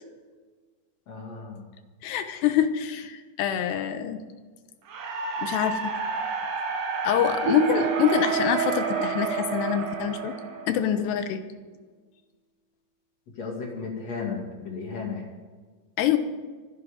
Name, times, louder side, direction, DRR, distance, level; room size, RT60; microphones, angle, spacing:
voice 1, 1.1-1.7 13.4-15.2, left 4 dB, 45° left, -1 dB, 3.2 m, -34 dB
voice 2, 2.0-4.2 5.4-5.8 7.0-10.4 10.7-11.4 16.0-16.2, left 10 dB, 80° left, 9 dB, 3.2 m, -25 dB
sound 1, 4.9-11.0, right 5 dB, 60° right, 3.6 m, -30 dB
Keyboard (musical), 7.5-10.3, right 8 dB, 80° right, 4.1 m, -32 dB
24.5 x 10.5 x 5.3 m, 1.4 s
omnidirectional pair, 4.9 m